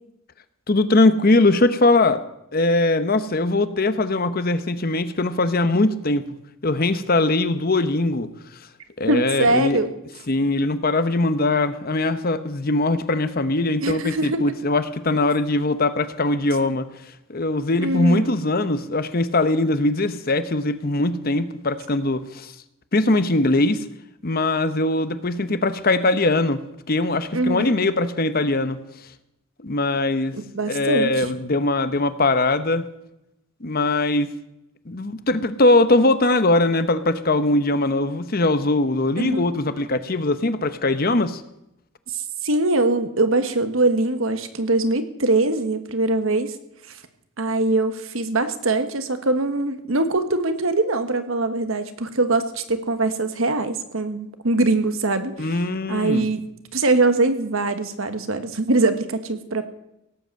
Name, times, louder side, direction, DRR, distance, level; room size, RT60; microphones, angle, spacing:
voice 1, 0.7-2.2 2.5-6.3 6.6-8.3 9.0-9.8 10.3-16.9 17.3-22.5 22.9-23.8 24.2-26.6 26.9-28.8 29.6-30.3 30.7-32.8 33.6-34.3 34.9-41.4 55.4-56.3, left 2 dB, 45° left, 12 dB, 0.9 m, -21 dB
voice 2, 9.1-9.9 13.8-14.4 17.8-18.3 27.3-27.7 30.3-31.3 39.2-39.4 42.1-46.5 47.4-55.6 55.9-56.4 56.7-59.7, right 2 dB, 70° right, 9 dB, 1.4 m, -22 dB
17.5 x 8.0 x 7.6 m, 0.85 s
head